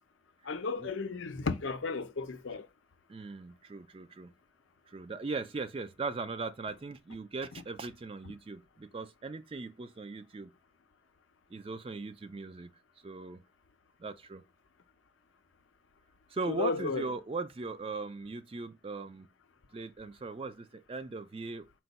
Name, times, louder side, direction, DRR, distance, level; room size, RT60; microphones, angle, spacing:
voice 1, 0.5-2.6 16.5-17.1, left 4 dB, 85° left, 0.5 m, -34 dB
voice 2, 3.1-4.3 4.9-10.5 11.5-12.7 13.0-13.4 14.0-14.4 16.3-19.3 19.7-21.8, right 3 dB, 30° right, 0.3 m, -39 dB
4.5 x 2.2 x 4.0 m
head